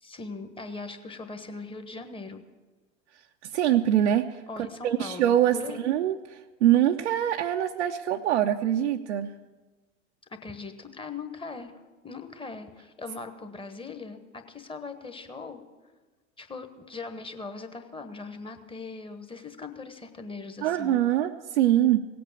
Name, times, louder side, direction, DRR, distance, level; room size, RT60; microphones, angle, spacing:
voice 1, 0.0-2.4 4.5-5.9 10.3-15.6 16.4-20.9, left 4 dB, 15° left, 8 dB, 1.3 m, -40 dB
voice 2, 3.5-4.3 4.8-6.2 6.6-9.3 20.6-22.1, right 11 dB, 75° right, 3 dB, 0.6 m, -23 dB
17.5 x 8.4 x 7.2 m, 1.3 s
figure-of-eight pair, 70°, 36 cm